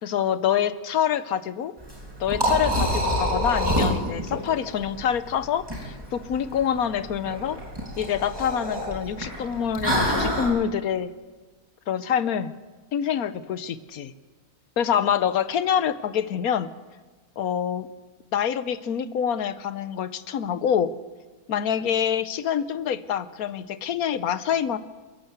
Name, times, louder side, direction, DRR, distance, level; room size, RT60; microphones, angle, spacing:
voice 1, 0.0-1.7 2.2-7.6 8.0-11.1 11.9-12.5 12.9-14.1 14.8-16.7 17.4-17.9 18.3-20.9 21.5-24.8, left 8 dB, 75° left, 14 dB, 1.3 m, -26 dB
Liquid, 1.8-10.5, equal, 15° right, 6.0 m, -27 dB
28.0 x 11.5 x 8.2 m, 1.3 s
omnidirectional pair, 1.6 m